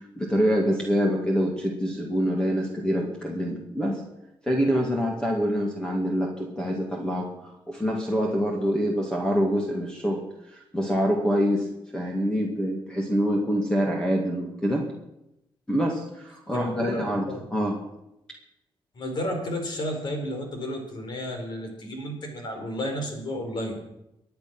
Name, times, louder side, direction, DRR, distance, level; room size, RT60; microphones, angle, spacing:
voice 1, 0.2-4.0 4.4-11.7 11.9-14.8 15.7-17.2 17.5-17.8, equal, 10° left, 0 dB, 2.1 m, -25 dB
voice 2, 16.5-17.4 18.9-23.7, left 1 dB, 55° left, 4 dB, 4.5 m, -32 dB
24.0 x 9.2 x 6.1 m, 0.87 s
wide cardioid pair, 155°, 9 cm